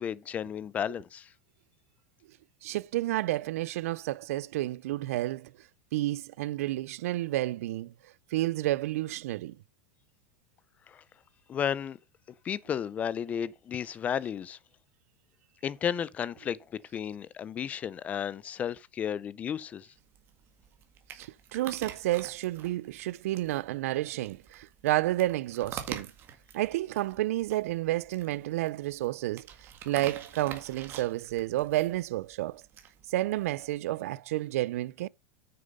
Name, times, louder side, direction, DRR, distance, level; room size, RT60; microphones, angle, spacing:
voice 1, 0.0-1.3 10.9-11.0 11.5-12.0 12.4-14.6 15.6-19.9, left 8 dB, 20° left, 0.4 m, -33 dB
voice 2, 2.6-5.5 5.9-7.9 8.3-9.6 21.1-26.1 26.5-29.5 29.8-32.6 33.1-35.1, right 16 dB, 70° right, 0.4 m, -30 dB
Dog Eating Individual Treats - Crunch Crunch Crunch, 20.0-33.8, right 9 dB, 30° right, 1.9 m, -47 dB
9.1 x 6.6 x 5.4 m
supercardioid pair, 165°, 8 cm